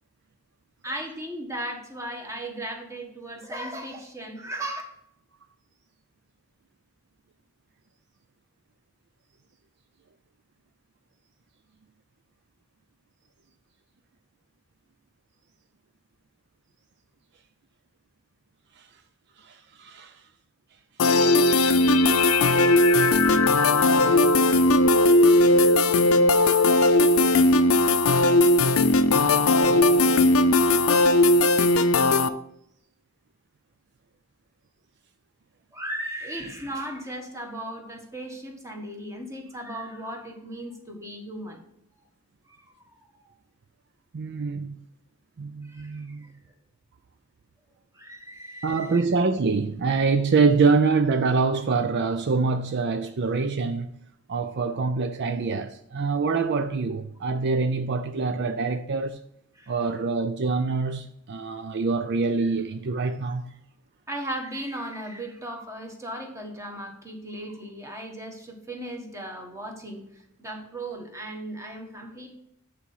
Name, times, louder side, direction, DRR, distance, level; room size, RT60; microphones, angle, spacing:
voice 1, 0.8-4.8 35.7-41.6 42.5-42.6 43.1-43.2 45.7-46.3 47.9-49.0 59.6-59.8 64.1-70.0 70.4-72.3, right 1 dB, 15° right, 1.5 m, -36 dB
voice 2, 19.5-20.1 44.1-44.8 45.4-46.3 48.6-53.9 54.3-59.2 59.7-63.5, right 4 dB, 55° right, 0.5 m, -25 dB
sound 1, 21.0-32.3, left 2 dB, 90° left, 0.5 m, -18 dB
8.7 x 4.2 x 5.6 m
head